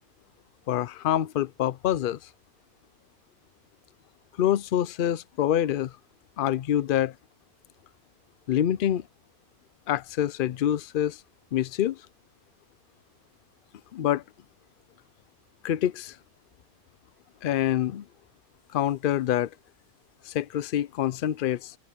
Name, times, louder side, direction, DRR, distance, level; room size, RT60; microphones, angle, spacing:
voice 1, 0.7-2.2 4.4-5.9 6.4-7.1 8.5-9.0 9.9-11.2 11.5-12.0 13.9-14.2 15.6-16.2 17.4-18.0 18.7-19.5 20.3-21.7, left 11 dB, 90° left, 0.4 m, -26 dB
omnidirectional pair, 1.5 m